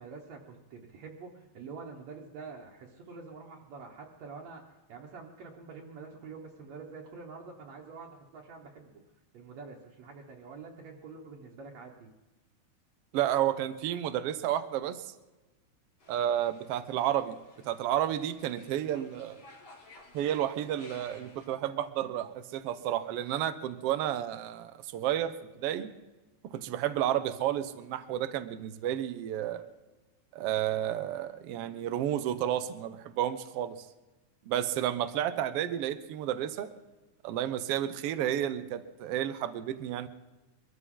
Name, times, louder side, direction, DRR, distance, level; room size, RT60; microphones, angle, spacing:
voice 1, 0.0-9.0 9.3-12.1, right 4 dB, 65° right, -1 dB, 2.3 m, -46 dB
voice 2, 13.1-15.0 16.1-17.4 17.7-19.4 20.1-25.9 26.5-29.6 30.3-33.8 34.5-36.7 37.2-40.1, right 11 dB, 80° right, 12 dB, 1.3 m, -31 dB
sound 1, 16.0-21.5, left 2 dB, 55° left, 4.0 m, -56 dB
23.0 x 14.5 x 3.8 m, 1.1 s
omnidirectional pair, 3.6 m